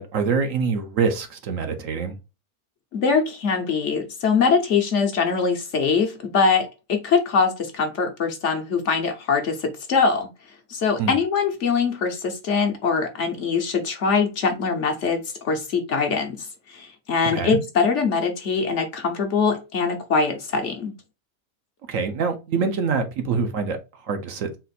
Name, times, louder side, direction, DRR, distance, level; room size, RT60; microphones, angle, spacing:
voice 1, 0.0-2.1 11.0-11.2 17.3-17.6 21.9-24.6, right 5 dB, 65° right, 1.0 m, -25 dB
voice 2, 2.9-10.3 10.7-20.9, left 5 dB, 55° left, 1.0 m, -23 dB
4.1 x 2.5 x 4.0 m
omnidirectional pair, 1.6 m